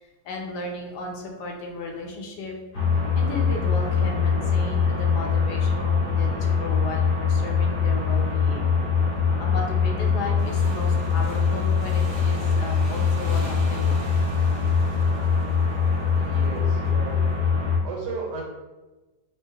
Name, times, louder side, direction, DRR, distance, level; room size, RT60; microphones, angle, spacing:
voice 1, 0.2-2.5 3.1-8.8 9.4-14.1, left 2 dB, 80° left, 1 dB, 1.2 m, -35 dB
sound 1, 2.7-17.8, left 6 dB, 40° left, 0.8 m, -23 dB
Motorcycle / Engine, 10.4-16.7, equal, 60° right, 1.3 m, -40 dB
voice 2, 16.1-17.2 17.8-18.4, right 4 dB, 85° right, -2 dB, 1.4 m, -34 dB
4.5 x 2.2 x 2.8 m, 1.2 s
omnidirectional pair, 1.8 m